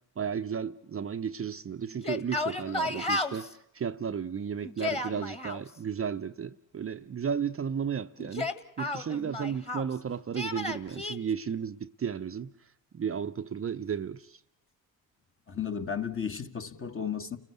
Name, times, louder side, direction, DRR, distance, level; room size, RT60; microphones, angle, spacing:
voice 1, 0.2-12.5 12.9-14.4, right 7 dB, 30° right, 0.8 m, -34 dB
Yell, 1.9-3.5 4.6-5.6 8.2-9.9 10.3-11.2, left 2 dB, 15° left, 1.8 m, -33 dB
voice 2, 15.5-17.4, left 7 dB, 30° left, 1.6 m, -34 dB
30.0 x 15.5 x 8.2 m
hypercardioid pair, 60°, 43 cm